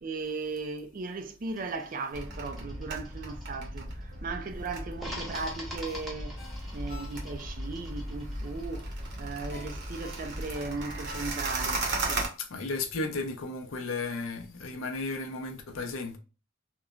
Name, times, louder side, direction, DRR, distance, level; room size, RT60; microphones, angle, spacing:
voice 1, 0.0-6.4 6.7-12.3, right 3 dB, 40° right, 0.4 m, -37 dB
sound 1, 1.5-4.1 5.0-11.1, equal, ahead, 0.7 m, -47 dB
sound 2, 2.1-12.3, right 2 dB, 55° right, 0.8 m, -36 dB
Ringtone, 5.3-7.6 8.0-8.1 9.5-11.7 12.1-12.2, left 3 dB, 35° left, 1.0 m, -49 dB
voice 2, 12.4-16.2, left 3 dB, 70° left, 0.5 m, -34 dB
3.0 x 2.1 x 2.3 m
head